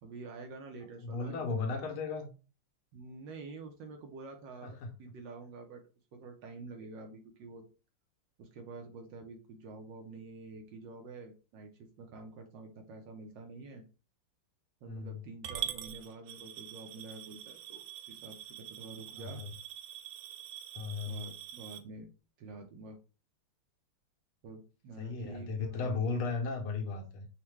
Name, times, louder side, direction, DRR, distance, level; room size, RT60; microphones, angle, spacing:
voice 1, 0.0-1.7 2.9-5.8 6.1-7.6 8.4-13.8 14.8-19.4 21.0-22.1 22.4-23.0 24.4-26.0, right 3 dB, 70° right, 4 dB, 1.2 m, -48 dB
voice 2, 1.0-2.3 4.6-4.9 14.9-15.2 19.2-19.5 20.7-21.2 25.0-27.3, left 4 dB, 80° left, 3 dB, 1.7 m, -35 dB
Coin (dropping) / Glass, 15.4-21.8, right 11 dB, 85° right, 1.5 m, -44 dB
5.7 x 2.2 x 3.1 m, 0.33 s
omnidirectional pair, 2.4 m